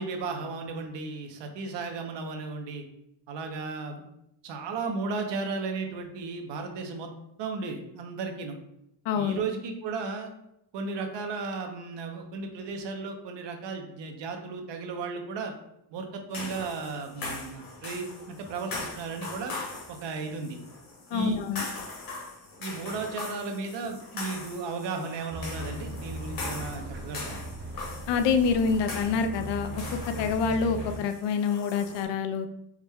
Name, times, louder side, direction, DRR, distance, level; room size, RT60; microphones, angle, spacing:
voice 1, 0.0-2.9 3.3-4.0 4.4-7.1 7.4-8.6 9.1-10.3 10.7-15.5 15.9-19.5 19.9-20.6 21.1-21.4 22.6-27.4, right 4 dB, 80° right, 4 dB, 0.8 m, -35 dB
voice 2, 9.1-9.4 21.1-21.7 28.1-29.8 30.2-32.5, left 5 dB, 85° left, 7 dB, 0.5 m, -26 dB
sound 1, 16.3-32.0, left 3 dB, 55° left, 1.3 m, -41 dB
sound 2, 25.3-31.0, right 1 dB, 30° right, 0.5 m, -38 dB
4.8 x 2.2 x 3.5 m, 0.81 s
cardioid pair, 150°, 42 cm